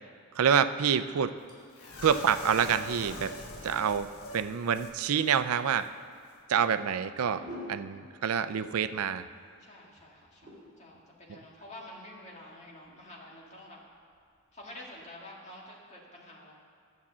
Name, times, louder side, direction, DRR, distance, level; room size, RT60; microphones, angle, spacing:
voice 1, 0.3-1.3 2.0-3.3 3.6-4.1 4.3-5.9 6.5-9.3, right 7 dB, 85° right, 12 dB, 0.4 m, -27 dB
sound 1, 1.1-15.1, left 1 dB, 30° right, 3.0 m, -54 dB
sound 2, 1.8-5.0 5.2-5.4 5.7-5.9, left 1 dB, 80° left, 1.3 m, -43 dB
voice 2, 3.5-4.2 7.4-7.7 9.6-13.8 14.5-16.5, left 1 dB, 30° left, -3 dB, 1.9 m, -49 dB
12.5 x 7.2 x 7.3 m, 2.3 s
head